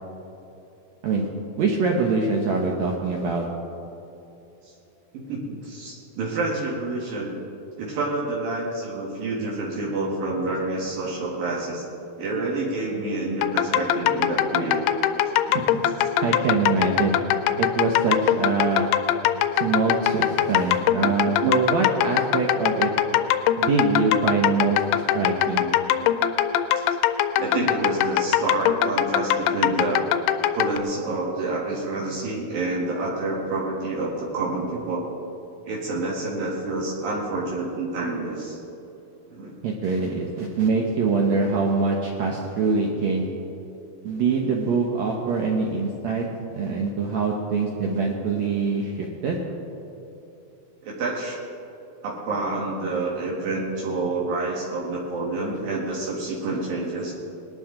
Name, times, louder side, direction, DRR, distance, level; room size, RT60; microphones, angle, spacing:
voice 1, 1.6-3.5 15.5-15.6 16.2-17.2 17.6-18.9 19.5-22.9 23.6-25.6 39.6-43.2 44.0-46.2 46.5-49.4, right 4 dB, 80° right, 0 dB, 1.5 m, -24 dB
voice 2, 5.1-7.4 7.8-11.8 12.2-14.8 16.0-16.1 21.4-21.6 25.4-26.1 26.8-26.9 27.4-30.1 30.5-35.1 35.6-38.6 39.3-39.5 50.8-51.4 52.0-57.1, right 2 dB, 65° right, -4 dB, 3.1 m, -28 dB
sound 1, 13.4-30.8, left 11 dB, 85° left, 2.6 m, -22 dB
20.5 x 12.0 x 3.8 m, 2.9 s
omnidirectional pair, 4.6 m